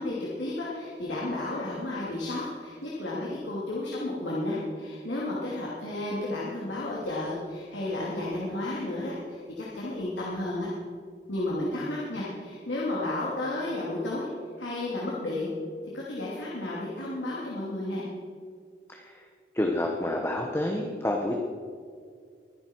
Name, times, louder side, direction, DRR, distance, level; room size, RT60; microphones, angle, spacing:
voice 1, 0.0-10.7 11.3-14.3 14.6-15.5 15.9-18.0, left 2 dB, 85° left, -6 dB, 2.9 m, -32 dB
voice 2, 18.9-19.2 19.5-21.4, left 1 dB, 15° left, 1 dB, 1.0 m, -29 dB
23.5 x 10.5 x 4.6 m, 2.2 s
head